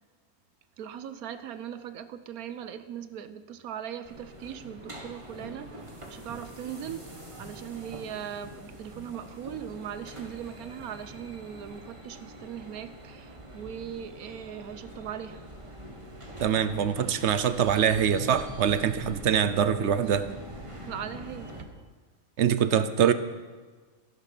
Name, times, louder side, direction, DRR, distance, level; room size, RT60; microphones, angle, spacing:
voice 1, 0.8-15.4 20.9-21.7, right 9 dB, 75° right, 1.2 m, -39 dB
sound 1, 4.0-21.6, equal, 20° right, 1.6 m, -44 dB
voice 2, 16.4-20.3 22.4-23.1, right 8 dB, 55° right, 0.9 m, -24 dB
15.0 x 12.0 x 5.9 m
omnidirectional pair, 1.6 m